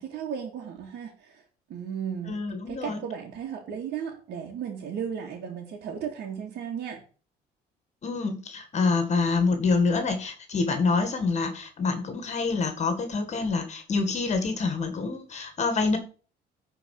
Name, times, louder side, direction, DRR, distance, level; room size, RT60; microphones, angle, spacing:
voice 1, 0.0-1.4 1.7-2.4 2.7-7.0, right 8 dB, 70° right, 2.4 m, -35 dB
voice 2, 2.3-3.0 8.0-16.0, left 4 dB, 40° left, 1.9 m, -26 dB
10.5 x 4.6 x 6.6 m
cardioid pair, 110°, 17 cm